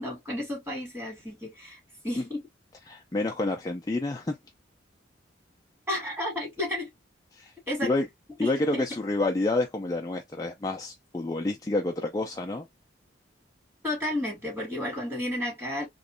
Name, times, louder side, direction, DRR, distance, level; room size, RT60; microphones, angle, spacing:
voice 1, 0.0-2.4 5.9-6.9 7.7-7.9 8.4-8.9 13.8-15.9, left 1 dB, 10° right, 1.9 m, -32 dB
voice 2, 2.9-4.4 7.3-7.5 7.8-8.1 8.4-12.6, left 2 dB, 20° left, 0.3 m, -28 dB
3.0 x 3.0 x 2.5 m
head